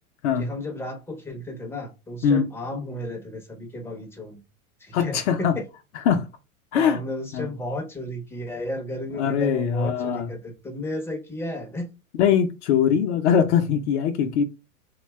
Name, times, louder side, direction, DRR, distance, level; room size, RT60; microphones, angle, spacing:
voice 1, 0.4-4.4 4.8-5.6 6.7-11.9, left 1 dB, 5° left, 0.5 m, -33 dB
voice 2, 4.9-5.6 6.1-6.2 6.7-7.0 7.3-7.5 9.2-10.3 12.2-14.4, left 7 dB, 55° left, 0.5 m, -21 dB
2.7 x 2.2 x 3.2 m
hypercardioid pair, 115°, 43 cm